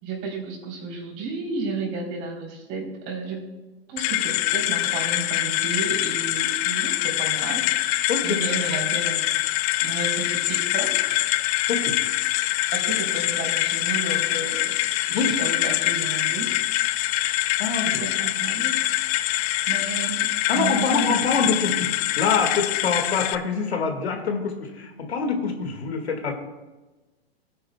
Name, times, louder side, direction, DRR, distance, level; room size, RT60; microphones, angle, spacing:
voice 1, 0.0-3.5 3.9-9.2 9.8-11.2 12.7-14.8 15.1-16.5 17.8-18.8 19.7-20.3 20.5-21.2, right 3 dB, 45° right, 0 dB, 3.6 m, -32 dB
sound 1, 4.0-23.4, left 16 dB, 40° left, 0.4 m, -24 dB
voice 2, 8.1-8.4 11.7-12.0 15.1-15.3 17.6-17.9 20.5-26.3, left 5 dB, 85° left, 4 dB, 1.9 m, -25 dB
18.5 x 9.4 x 2.3 m, 1.2 s
hypercardioid pair, 120°, 31 cm